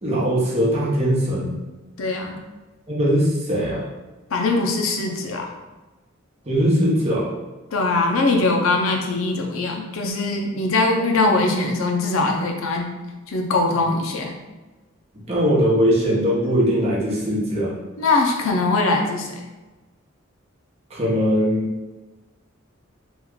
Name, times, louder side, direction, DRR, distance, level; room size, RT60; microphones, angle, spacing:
voice 1, 0.0-1.6 2.9-3.8 6.5-7.3 15.3-17.7 20.9-21.7, equal, 30° right, -5 dB, 0.9 m, -20 dB
voice 2, 2.0-2.4 4.3-5.5 7.7-12.9 13.3-14.3 18.0-19.4, left 3 dB, 90° left, 2 dB, 0.5 m, -21 dB
3.0 x 2.3 x 3.6 m, 1.2 s
head